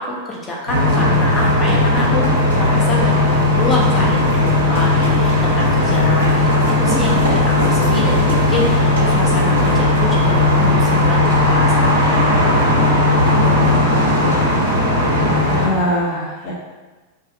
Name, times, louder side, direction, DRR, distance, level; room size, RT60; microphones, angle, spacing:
voice 1, 0.0-12.5 12.8-13.1, left 1 dB, 20° left, -4 dB, 0.7 m, -26 dB
sound 1, 0.7-15.7, left 2 dB, 90° left, 1.4 m, -16 dB
sound 2, 1.8-11.5, left 3 dB, 75° left, 0.8 m, -37 dB
voice 2, 12.3-12.6 13.4-14.7 15.2-16.5, equal, 45° left, -5 dB, 0.9 m, -25 dB
2.6 x 2.3 x 3.9 m, 1.2 s
figure-of-eight pair, 90°, 0 cm